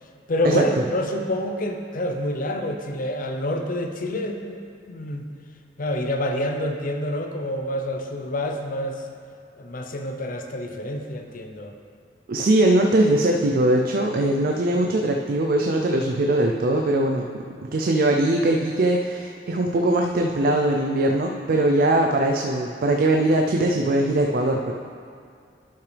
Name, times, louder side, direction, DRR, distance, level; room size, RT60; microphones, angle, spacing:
voice 1, 0.3-4.6 4.9-5.2 5.8-9.0 9.6-11.7, left 1 dB, 50° left, 4 dB, 0.7 m, -27 dB
voice 2, 12.3-24.7, right 1 dB, 50° right, 2 dB, 0.4 m, -21 dB
12.0 x 5.8 x 3.4 m, 2.3 s
head